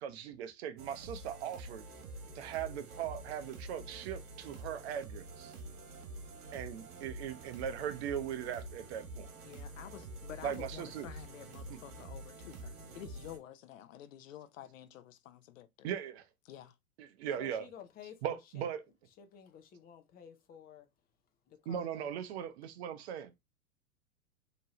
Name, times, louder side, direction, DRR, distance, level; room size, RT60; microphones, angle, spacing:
voice 1, 0.0-1.8 2.3-5.5 6.5-9.3 10.4-11.1 11.7-11.8 15.8-16.2 17.0-17.7 18.2-18.8 21.7-23.3, right 9 dB, 45° right, 0.7 m, -39 dB
sound 1, 0.8-13.4, right 2 dB, 65° right, 1.4 m, -48 dB
sound 2, 1.7-13.3, right 2 dB, 20° right, 1.1 m, -60 dB
voice 2, 9.5-15.9 16.5-16.8, left 11 dB, 60° left, 0.7 m, -50 dB
voice 3, 17.4-18.7 19.2-20.9 21.5-22.1, left 8 dB, 20° left, 0.6 m, -53 dB
4.4 x 3.0 x 2.9 m
hypercardioid pair, 105°, 45 cm